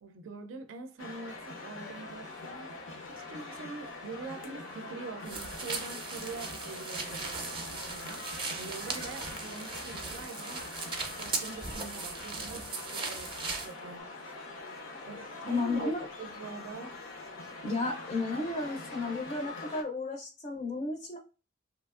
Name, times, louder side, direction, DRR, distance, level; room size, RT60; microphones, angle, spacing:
voice 1, 0.0-2.8 3.1-10.7 11.2-14.2 15.0-15.9 16.2-17.0, right 4 dB, 85° right, 0.4 m, -44 dB
sound 1, 1.0-19.8, left 3 dB, 90° left, 0.7 m, -44 dB
sound 2, 5.3-13.7, right 4 dB, 25° right, 0.5 m, -38 dB
voice 2, 15.5-16.1 17.6-21.2, left 3 dB, 35° left, 0.4 m, -33 dB
2.9 x 2.4 x 2.3 m
head